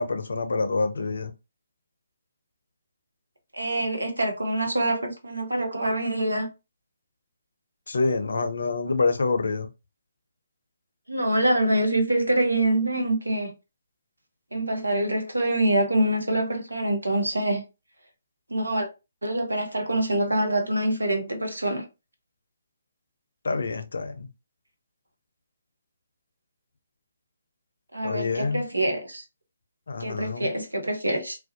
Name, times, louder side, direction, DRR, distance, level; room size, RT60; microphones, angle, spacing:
voice 1, 0.0-1.3 7.9-9.7 23.4-24.3 28.0-28.6 29.9-30.5, left 3 dB, 65° left, 0.5 m, -26 dB
voice 2, 3.5-6.5 11.1-13.5 14.5-17.6 18.5-18.9 19.2-21.8 27.9-29.2 30.0-31.4, right 1 dB, 80° right, 0.8 m, -25 dB
2.5 x 2.1 x 2.5 m
figure-of-eight pair, 140°, 0 cm